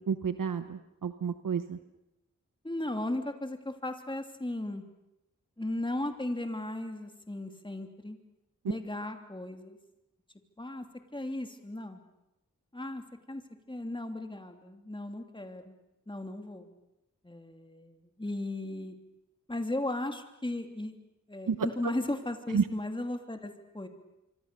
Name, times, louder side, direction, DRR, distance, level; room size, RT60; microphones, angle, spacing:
voice 1, 0.0-1.8 8.6-8.7 21.5-21.6 21.8-21.9 22.5-22.6, right 6 dB, 85° right, 10 dB, 1.1 m, -30 dB
voice 2, 2.6-4.8 5.6-8.2 8.6-9.8 10.6-10.8 11.1-12.0 12.7-13.4 13.7-15.7 16.1-16.7 17.2-18.9 19.5-20.9 21.3-23.9, left 1 dB, 15° left, 5 dB, 3.0 m, -36 dB
25.5 x 25.5 x 6.9 m, 0.90 s
wide cardioid pair, 65°, 32 cm